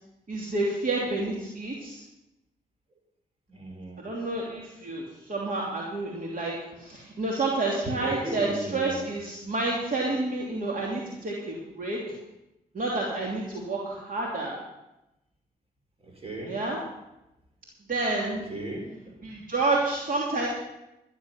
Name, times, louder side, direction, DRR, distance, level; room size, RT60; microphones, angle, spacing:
voice 1, 0.3-2.0 4.0-12.0 12.7-14.6 16.5-16.8 17.9-18.4 19.2-20.5, right 2 dB, 55° right, -3 dB, 2.9 m, -29 dB
voice 2, 3.5-4.0 8.0-9.1 16.0-16.6 18.5-19.2, right 1 dB, 35° right, 2 dB, 4.6 m, -36 dB
13.0 x 10.5 x 5.8 m, 0.92 s
supercardioid pair, 45°, 17 cm